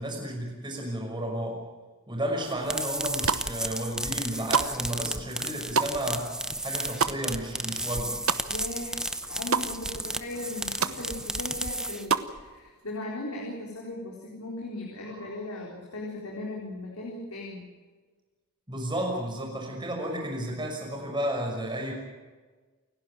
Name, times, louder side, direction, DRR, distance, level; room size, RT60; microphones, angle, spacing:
voice 1, 0.0-1.6 2.1-6.3 6.6-8.2 15.0-15.4 18.7-21.9, right 1 dB, 20° right, 0 dB, 6.1 m, -32 dB
sound 1, 2.4-12.4, right 1 dB, 5° right, 0.8 m, -33 dB
sound 2, 3.0-3.7 4.1-8.8 9.1-9.7 10.1-10.2 10.4-11.0 11.4-12.3, right 6 dB, 65° right, 1.0 m, -29 dB
voice 2, 8.5-17.7, left 2 dB, 80° left, -2 dB, 4.1 m, -38 dB
29.0 x 11.5 x 9.1 m, 1.4 s
head